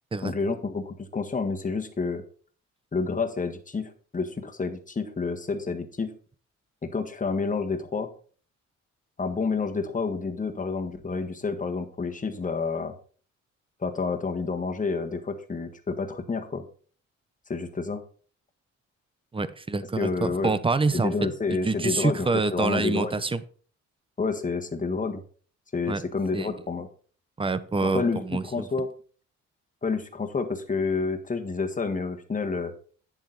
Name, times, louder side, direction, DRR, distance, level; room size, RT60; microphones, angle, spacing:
voice 1, 0.2-2.2 2.9-6.1 6.8-8.1 9.2-12.9 13.8-16.6 17.5-18.0 20.0-20.5 20.9-23.2 24.2-25.2 25.7-26.9 27.8-28.9 29.8-32.7, left 4 dB, 25° left, 5 dB, 1.6 m, -29 dB
voice 2, 19.3-21.1 21.5-23.4 25.9-26.0 26.3-26.6 27.4-28.7, right 3 dB, 15° right, 14 dB, 0.8 m, -26 dB
9.8 x 7.4 x 4.0 m, 0.43 s
cardioid pair, 90°, 30 cm